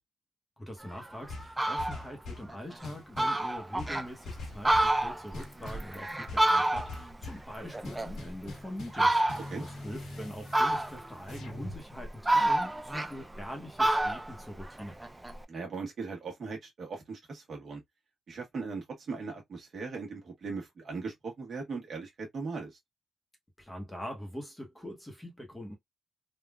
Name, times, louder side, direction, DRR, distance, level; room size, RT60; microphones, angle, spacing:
voice 1, 0.6-15.0 23.6-25.8, equal, 10° left, 0.9 m, -43 dB
Fowl, 0.9-1.0 1.4-2.0 2.5-2.6 2.8-2.9 3.2-4.1 4.5-7.1 7.5-8.5 8.9-9.6 10.5-11.2 11.7-13.5 13.8-15.4, right 1 dB, 10° right, 0.4 m, -28 dB
sound 1, 1.3-2.5 2.8-3.4 3.8-5.0 5.3-5.9 6.3-7.5 7.8-11.8, left 2 dB, 85° left, 1.5 m, -43 dB
voice 2, 15.5-17.8 18.3-22.8, right 4 dB, 50° right, 1.2 m, -39 dB
3.5 x 2.3 x 2.3 m
cardioid pair, 135°, 0 cm